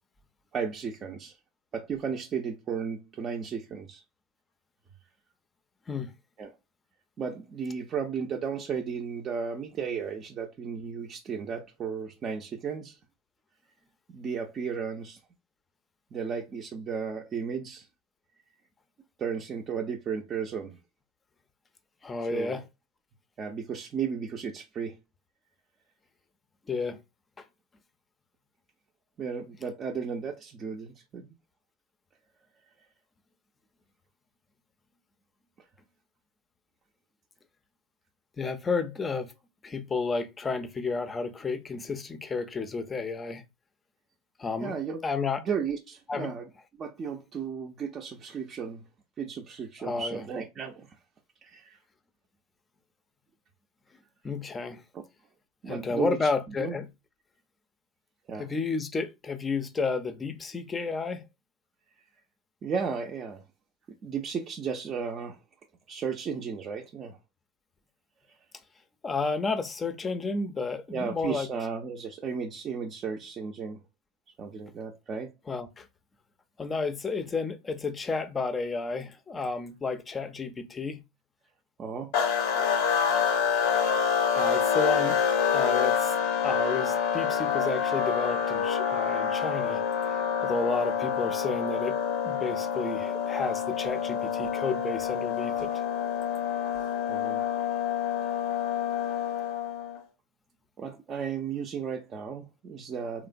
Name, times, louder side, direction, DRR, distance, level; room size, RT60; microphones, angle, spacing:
voice 1, 0.5-1.3 1.7-4.0 6.4-6.5 7.2-13.0 14.1-15.2 16.1-17.9 19.2-20.8 22.3-22.6 23.4-25.0 29.2-31.3 44.6-45.0 45.5-46.5 46.8-48.8 49.2-50.9 51.4-51.8 54.9-55.0 55.6-56.3 56.6-56.8 58.3-58.5 62.6-63.4 64.0-65.4 65.9-67.2 70.9-73.8 74.4-75.3 81.8-82.1 97.1-97.4 100.8-103.3, right 6 dB, 35° right, 0.5 m, -34 dB
voice 2, 22.0-22.6 26.7-27.0 38.4-39.3 39.6-43.4 44.4-44.8 45.0-45.4 46.1-46.3 49.8-50.2 54.2-54.8 55.7-56.9 58.4-61.2 69.0-71.5 75.5-75.9 76.6-81.0 82.5-82.7 84.3-85.2 85.5-86.1 86.4-89.8 90.4-92.0 92.2-95.7, left 4 dB, 20° left, 0.5 m, -31 dB
sound 1, 82.1-100.0, left 7 dB, 65° left, 0.6 m, -27 dB
3.0 x 2.0 x 2.5 m
hypercardioid pair, 90°, 0 cm